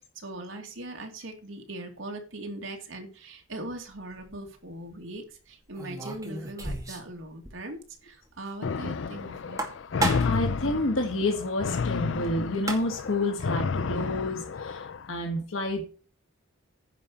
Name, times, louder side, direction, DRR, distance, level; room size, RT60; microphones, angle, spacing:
voice 1, 0.1-9.6, right 2 dB, 65° right, 3 dB, 2.8 m, -40 dB
sound 1, 3.9-4.3 5.7-7.2 7.4-7.5 7.9-8.0 9.4-10.5 12.2-12.3 12.5-13.1, right 2 dB, 15° right, 2.4 m, -32 dB
sound 2, 8.6-15.1, left 5 dB, 60° left, 0.4 m, -31 dB
voice 2, 10.2-15.8, left 2 dB, 80° left, 2 dB, 2.3 m, -29 dB
10.5 x 5.6 x 8.6 m, 0.37 s
head